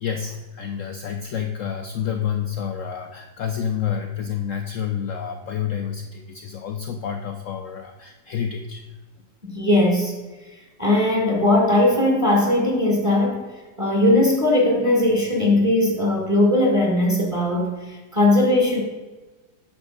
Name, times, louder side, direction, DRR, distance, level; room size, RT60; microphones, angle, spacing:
voice 1, 0.0-8.9, left 8 dB, 70° left, 5 dB, 0.7 m, -29 dB
voice 2, 9.4-10.1 10.8-13.5 13.8-18.8, left 1 dB, 20° right, -2 dB, 1.5 m, -19 dB
8.6 x 6.2 x 3.9 m, 1.2 s
omnidirectional pair, 1.9 m